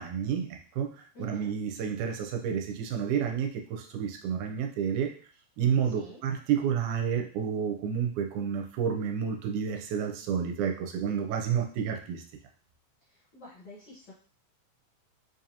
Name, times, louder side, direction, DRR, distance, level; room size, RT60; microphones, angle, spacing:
voice 1, 0.0-5.1 5.6-12.2, right 7 dB, 85° right, 3 dB, 2.0 m, -30 dB
voice 2, 1.1-1.5 5.8-6.2 13.0-14.1, left 3 dB, 75° left, -7 dB, 1.0 m, -49 dB
5.0 x 2.6 x 2.8 m, 0.42 s
omnidirectional pair, 3.5 m